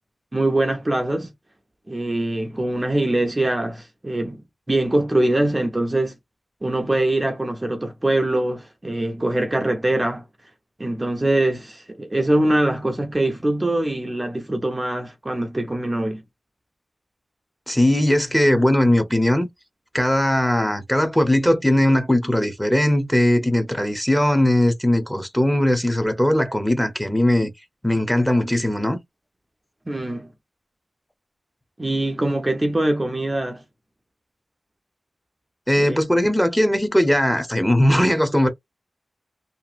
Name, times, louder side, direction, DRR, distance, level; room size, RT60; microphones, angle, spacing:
voice 1, 0.3-1.3 1.9-4.4 4.7-6.2 6.6-10.3 10.8-16.2 29.9-30.3 31.8-33.6 35.8-36.0, right 1 dB, 25° right, 0.5 m, -23 dB
voice 2, 17.7-19.5 19.9-27.5 27.8-29.0 35.7-38.5, left 1 dB, 5° left, 0.8 m, -19 dB
2.8 x 2.5 x 2.4 m
wide cardioid pair, 80°, 0 cm